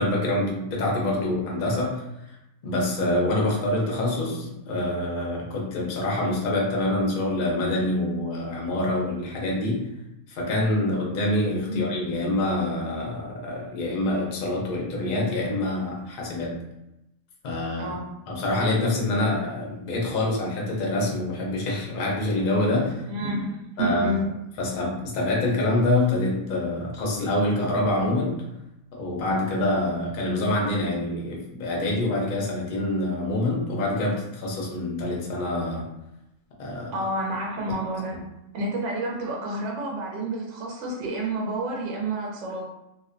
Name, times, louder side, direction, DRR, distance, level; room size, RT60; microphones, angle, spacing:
voice 1, 0.0-2.0 2.6-9.9 10.3-16.6 17.4-17.9 18.3-23.0 23.8-24.2 24.6-28.4 28.9-35.9 36.6-36.9, left 1 dB, 55° left, -2 dB, 0.5 m, -26 dB
voice 2, 23.1-24.3 36.9-38.2 38.5-42.6, right 1 dB, 65° right, -1 dB, 0.8 m, -29 dB
2.6 x 2.1 x 2.5 m, 0.89 s
omnidirectional pair, 1.5 m